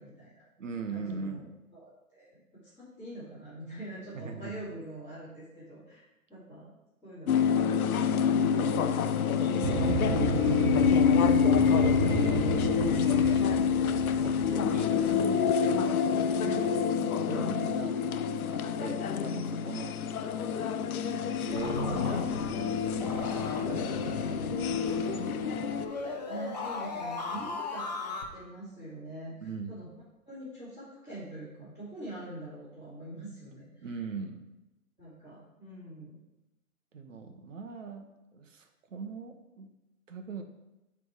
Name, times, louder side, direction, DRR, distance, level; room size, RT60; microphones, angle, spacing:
voice 1, 0.0-0.4 0.9-1.4 1.7-6.7 7.0-8.2 13.4-13.7 14.4-14.8 17.9-18.0 26.2-29.9 30.3-34.0 35.0-36.2, right 1 dB, 5° right, -16 dB, 2.4 m, -44 dB
voice 2, 0.6-1.5 4.1-4.6 8.8-10.0 10.3-10.7 11.3-13.6 14.2-18.0 18.5-20.0 21.4-25.3 27.3-27.4 29.4-29.7 33.8-34.5 36.9-39.7 40.1-40.4, right 4 dB, 60° right, 5 dB, 1.2 m, -41 dB
sound 1, 7.3-25.8, left 7 dB, 75° left, 0.6 m, -27 dB
sound 2, 9.6-14.7, right 5 dB, 80° right, 0.9 m, -32 dB
sound 3, 21.5-28.2, left 3 dB, 30° left, 0.6 m, -36 dB
9.2 x 3.6 x 4.8 m, 0.98 s
hypercardioid pair, 170°, 43 cm